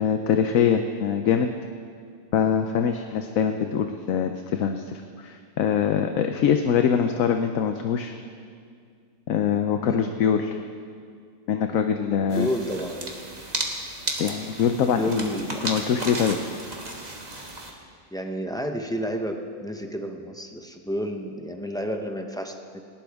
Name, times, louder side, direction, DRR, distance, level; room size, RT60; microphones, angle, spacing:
voice 1, 0.0-1.5 2.3-8.1 9.3-10.6 11.5-12.5 14.2-15.2 15.6-16.4, left 7 dB, 65° left, 6 dB, 1.0 m, -23 dB
voice 2, 9.8-10.1 12.3-13.1 14.9-15.8 18.1-22.8, equal, 5° left, 3 dB, 0.6 m, -31 dB
sound 1, 12.3-17.7, right 2 dB, 30° right, 1.5 m, -34 dB
19.0 x 17.0 x 3.6 m, 2.2 s
omnidirectional pair, 1.6 m